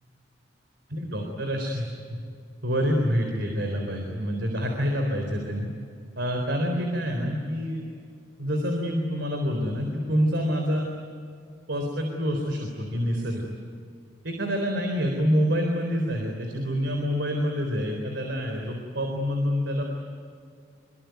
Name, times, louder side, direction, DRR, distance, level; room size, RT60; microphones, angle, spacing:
voice 1, 0.9-2.2 2.6-5.7 6.2-7.8 8.4-10.9 11.7-13.4 14.2-19.8, equal, 70° right, 3 dB, 4.0 m, -27 dB
25.0 x 24.0 x 9.4 m, 2.3 s
head